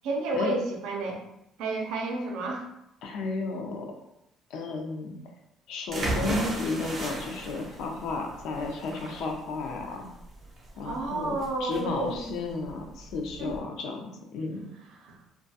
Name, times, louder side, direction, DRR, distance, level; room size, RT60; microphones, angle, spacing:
voice 1, 0.0-1.2 1.6-2.7 10.8-12.3 13.4-13.6 14.9-15.2, right 2 dB, 80° right, 1 dB, 0.5 m, -31 dB
voice 2, 3.0-3.9 4.5-5.1 5.7-10.1 10.8-14.7, left 3 dB, 70° left, 3 dB, 0.4 m, -33 dB
sound 1, 5.9-13.6, right 2 dB, 35° right, 0.5 m, -36 dB
2.2 x 2.2 x 2.6 m, 0.85 s
cardioid pair, 155°, 0 cm